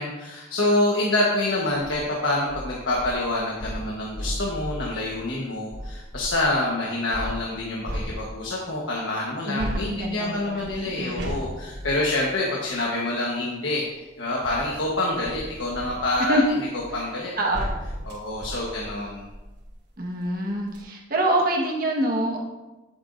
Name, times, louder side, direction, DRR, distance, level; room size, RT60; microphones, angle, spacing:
voice 1, 0.0-16.4 16.9-17.7 18.1-19.3, left 2 dB, 85° left, -3 dB, 1.3 m, -27 dB
sound 1, 1.7-2.0 2.5-6.5 7.1-8.7 9.6-13.0 13.9-19.8 20.3-20.4 20.6-20.8, equal, 65° right, 2.5 m, -36 dB
voice 2, 9.5-11.3 16.3-16.4 17.4-17.7 20.0-22.4, right 1 dB, 50° right, -1 dB, 1.5 m, -26 dB
10.5 x 8.0 x 2.6 m, 1.1 s
head